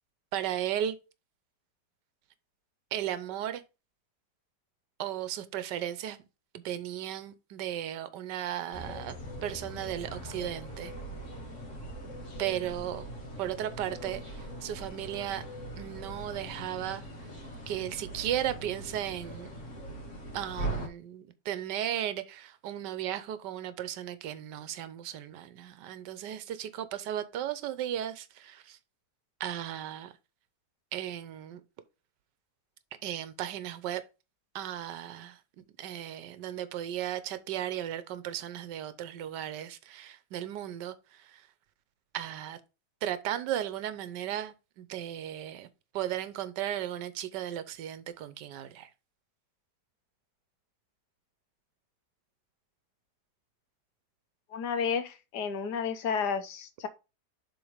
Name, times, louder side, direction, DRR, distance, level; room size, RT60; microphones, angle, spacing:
voice 1, 0.3-1.0 2.9-3.6 5.0-6.2 6.5-9.2 9.4-10.9 12.4-13.1 13.4-15.4 15.8-17.0 17.7-19.5 20.3-28.8 29.4-30.1 30.9-31.6 33.0-34.0 34.5-41.5 42.1-42.6 43.0-45.7 45.9-48.9, right 11 dB, 80° right, 1.4 m, -35 dB
sound 1, 8.7-20.9, right 1 dB, 45° left, 1.9 m, -41 dB
voice 2, 54.5-56.9, left 6 dB, 75° left, 1.4 m, -31 dB
7.2 x 3.7 x 4.9 m
omnidirectional pair, 1.8 m